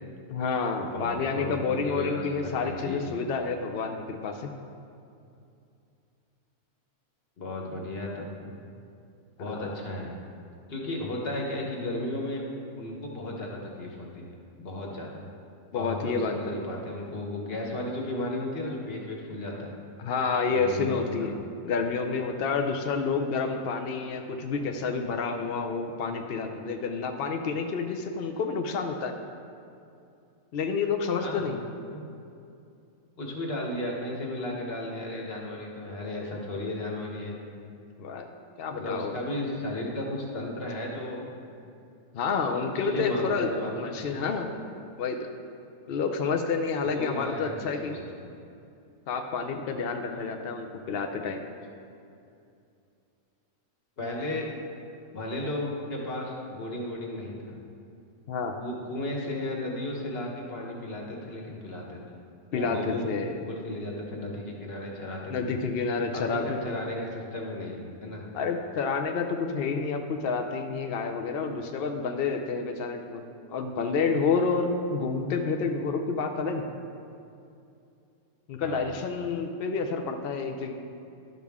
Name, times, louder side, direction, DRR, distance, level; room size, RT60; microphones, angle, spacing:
voice 1, 0.3-4.5 9.4-9.5 15.7-16.6 20.0-21.3 21.6-29.1 30.5-31.6 38.0-38.3 38.6-39.2 42.1-43.5 43.7-44.5 45.0-45.2 45.9-48.0 49.1-51.4 58.3-58.5 62.5-63.4 65.3-66.6 68.3-73.2 73.5-76.6 78.5-80.7, left 4 dB, 75° left, 4 dB, 0.5 m, -29 dB
voice 2, 0.9-2.3 2.6-3.0 7.4-8.6 9.4-10.2 10.7-12.4 12.8-15.2 15.7-19.7 20.5-21.4 31.2-31.4 31.9-32.0 33.2-37.4 38.8-41.3 42.7-44.3 46.8-47.6 47.8-48.0 54.0-54.5 55.1-57.5 58.6-62.0 62.5-63.2 63.5-65.3 66.1-68.2 78.6-78.8, left 1 dB, 40° left, -1 dB, 1.3 m, -34 dB
11.5 x 6.0 x 3.5 m, 2.6 s
omnidirectional pair, 1.7 m